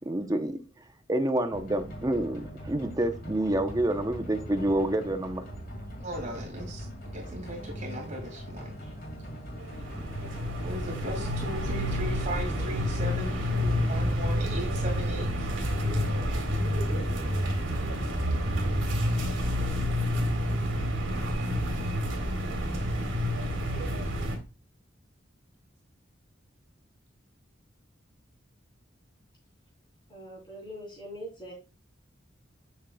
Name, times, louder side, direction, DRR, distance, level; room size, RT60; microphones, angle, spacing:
voice 1, 0.1-0.6 1.1-5.4, right 1 dB, 20° right, 7 dB, 0.7 m, -28 dB
sound 1, 1.5-14.1, equal, 50° left, 2.0 m, -41 dB
voice 2, 6.0-6.9 7.1-8.9 10.6-15.5, equal, 40° right, 1 dB, 2.1 m, -38 dB
sound 2, 9.6-24.4, equal, 85° right, 1.9 m, -29 dB
voice 3, 30.1-31.5, equal, 25° left, -3 dB, 3.7 m, -42 dB
7.2 x 6.4 x 2.2 m, 0.30 s
head